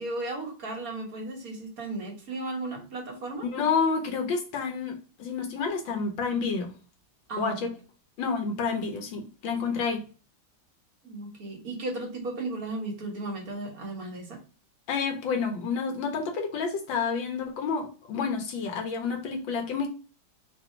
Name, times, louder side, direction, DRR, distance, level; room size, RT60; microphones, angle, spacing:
voice 1, 0.0-3.5 7.3-7.7 11.0-14.4, right 2 dB, 50° right, 1 dB, 1.6 m, -35 dB
voice 2, 3.4-6.7 7.4-7.7 8.2-10.0 14.9-19.9, left 5 dB, 75° left, 4 dB, 1.6 m, -29 dB
3.9 x 2.8 x 4.4 m, 0.35 s
omnidirectional pair, 2.1 m